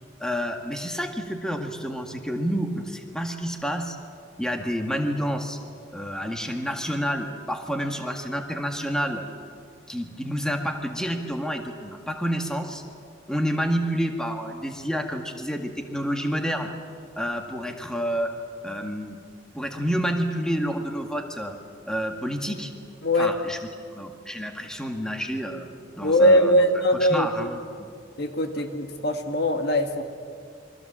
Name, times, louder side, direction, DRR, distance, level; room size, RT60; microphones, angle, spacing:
voice 1, 0.2-4.0 4.4-5.6 5.9-9.3 9.9-12.8 13.3-16.7 17.2-18.3 18.6-19.2 19.5-21.5 21.9-22.7 23.2-23.6 23.9-25.7 26.0-26.6 26.9-27.6, equal, 5° left, 3 dB, 1.8 m, -29 dB
voice 2, 23.0-23.3 26.0-27.5 28.2-30.0, equal, 60° left, 6 dB, 1.8 m, -21 dB
27.5 x 23.5 x 7.5 m, 2.2 s
head